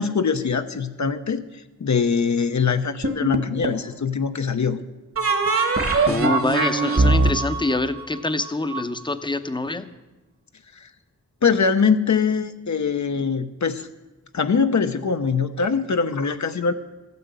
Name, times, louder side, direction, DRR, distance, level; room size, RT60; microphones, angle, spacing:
voice 1, 0.0-1.4 1.8-4.8 10.8-10.9 11.4-13.9 14.3-16.7, left 5 dB, 60° left, 8 dB, 0.8 m, -22 dB
sound 1, 3.0-3.9 5.2-8.8, right 3 dB, 45° right, 1.5 m, -21 dB
voice 2, 6.1-9.9, left 2 dB, 15° left, 10 dB, 0.8 m, -25 dB
14.0 x 9.5 x 8.2 m, 1.1 s
wide cardioid pair, 100°, 32 cm